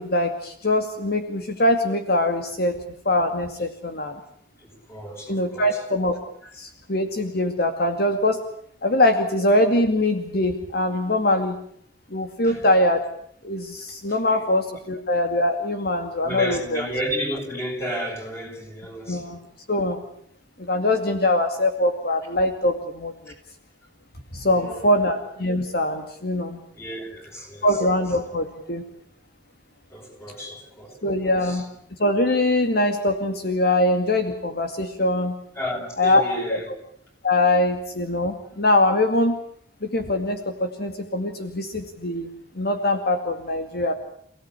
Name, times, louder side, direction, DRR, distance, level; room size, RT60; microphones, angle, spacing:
voice 1, 0.0-2.8 3.1-4.1 5.3-6.2 6.5-8.4 8.8-11.6 12.1-13.0 13.4-16.8 19.1-19.4 19.7-20.0 20.6-23.1 24.3-26.6 27.6-28.8 31.0-31.6 32.0-35.4 36.0-36.6 37.2-39.4 39.8-43.9, left 1 dB, 60° left, 2.3 m, -22 dB
voice 2, 4.6-5.8 6.4-6.5 12.4-12.7 14.1-14.4 16.2-19.4 24.4-25.0 26.7-27.8 29.9-31.7 35.6-36.7, equal, 15° left, 7.6 m, -33 dB
28.5 x 17.5 x 9.9 m
head